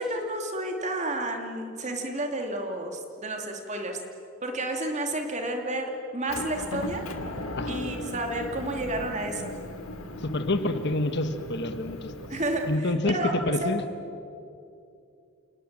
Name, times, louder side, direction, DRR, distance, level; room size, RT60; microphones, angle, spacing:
voice 1, 0.0-4.0 4.4-7.0 7.7-9.6 12.3-13.3 13.6-13.7, right 1 dB, 35° right, 3 dB, 2.7 m, -31 dB
Motor vehicle (road) / Engine, 6.3-12.8, left 1 dB, 85° left, 2.2 m, -37 dB
voice 2, 10.2-12.1 12.7-13.8, left 2 dB, 55° left, 9 dB, 1.4 m, -27 dB
28.5 x 19.0 x 7.6 m, 2.6 s
head